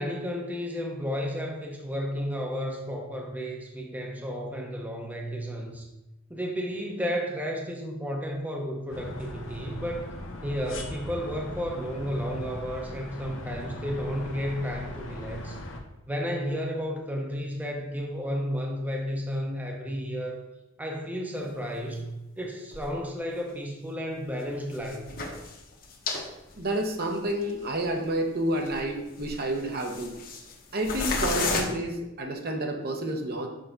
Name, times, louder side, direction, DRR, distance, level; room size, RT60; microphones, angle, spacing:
voice 1, 0.0-5.9 6.3-10.1 10.4-15.6 16.1-20.4 20.8-25.1, equal, 10° right, 1 dB, 0.8 m, -32 dB
sound 1, 8.9-15.8, left 1 dB, 75° left, 1.0 m, -39 dB
sound 2, 21.7-21.8 22.7-22.9 23.3-23.4 24.7-26.2 26.5-26.6 27.3-27.4 27.9-28.0 28.6-28.9 29.2-30.5 30.8-31.6, left 3 dB, 50° left, 1.1 m, -32 dB
voice 2, 26.6-30.1 30.7-33.5, right 1 dB, 50° right, 3 dB, 1.0 m, -29 dB
6.5 x 5.7 x 3.9 m, 0.96 s
head